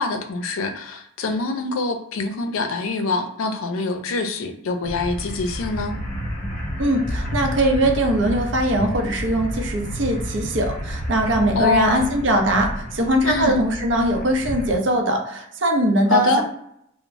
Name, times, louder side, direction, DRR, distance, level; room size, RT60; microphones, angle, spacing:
voice 1, 0.0-5.9 11.5-12.1 13.2-13.6 16.1-16.4, left 3 dB, 90° left, 6 dB, 0.4 m, -24 dB
sound 1, 4.8-14.8, equal, 40° left, 0.7 m, -30 dB
voice 2, 6.8-16.4, right 1 dB, 60° right, 3 dB, 0.6 m, -21 dB
3.0 x 2.0 x 2.6 m, 0.75 s
head